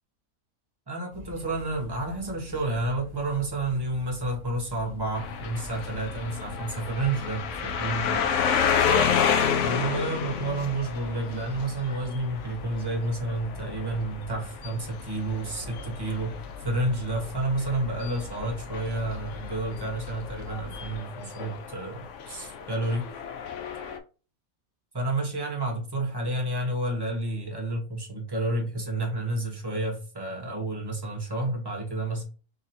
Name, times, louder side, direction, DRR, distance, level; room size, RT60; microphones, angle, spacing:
voice 1, 0.9-8.2 9.6-16.3 16.6-23.0 24.9-32.2, right 2 dB, 20° right, 0.9 m, -30 dB
sound 1, 1.1-21.0, left 2 dB, 35° right, 1.2 m, -44 dB
sound 2, 5.2-24.0, left 7 dB, 65° left, 0.8 m, -31 dB
3.9 x 2.8 x 2.7 m
omnidirectional pair, 1.6 m